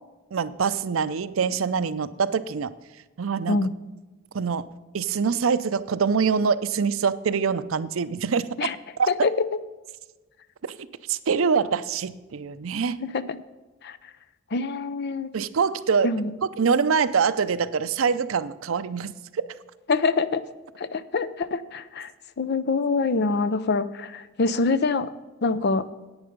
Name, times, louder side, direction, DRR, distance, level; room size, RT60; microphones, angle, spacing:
voice 1, 0.3-2.7 3.2-3.6 4.3-4.6 4.9-8.7 9.0-9.1 11.1-13.0 15.3-16.1 16.6-19.1, right 6 dB, 80° right, 14 dB, 0.5 m, -24 dB
voice 2, 9.1-9.5 13.0-13.4 13.8-14.0 14.5-15.3 16.0-16.3 19.9-20.4 20.8-22.1 22.4-25.1 25.4-25.8, left 3 dB, 55° left, 14 dB, 0.5 m, -25 dB
10.5 x 8.9 x 5.2 m, 1.2 s
head